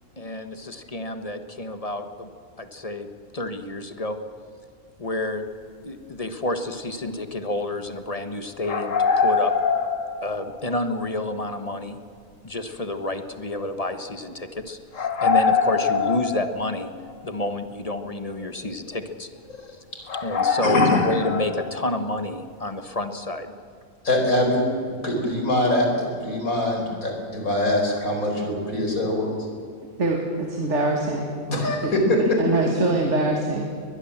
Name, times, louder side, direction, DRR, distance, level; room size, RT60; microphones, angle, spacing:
voice 1, 0.2-2.3 2.6-3.1 3.3-4.2 5.0-5.5 5.8-9.5 10.2-12.0 12.4-16.9 17.2-19.3 19.7-19.8 20.2-23.5, left 2 dB, 25° left, 8 dB, 1.4 m, -29 dB
sound 1, 8.6-10.7 10.9-11.0 14.9-16.9 17.3-17.4 18.4-18.5 18.9-19.0 19.5-19.7 20.1-22.0, left 5 dB, 65° left, 2.0 m, -23 dB
voice 2, 20.6-21.0 24.0-24.6 24.9-29.4 31.5-32.2, left 1 dB, 85° left, 1 dB, 5.2 m, -23 dB
voice 3, 30.0-31.3 31.8-31.9 32.4-33.7, right 2 dB, 55° right, 1 dB, 2.6 m, -23 dB
22.5 x 20.5 x 7.4 m, 2.4 s
omnidirectional pair, 1.4 m